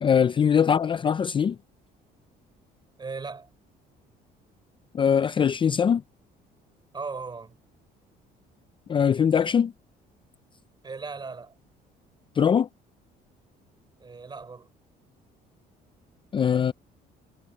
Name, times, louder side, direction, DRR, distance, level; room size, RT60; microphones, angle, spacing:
voice 1, 0.0-1.6 4.9-6.0 8.9-9.7 12.4-12.7 16.3-16.7, left 7 dB, 30° left, 0.5 m, -21 dB
voice 2, 3.0-3.5 6.9-7.6 10.8-11.6 14.0-14.7, right 4 dB, 25° right, 5.8 m, -37 dB
cardioid pair, 110°, 17 cm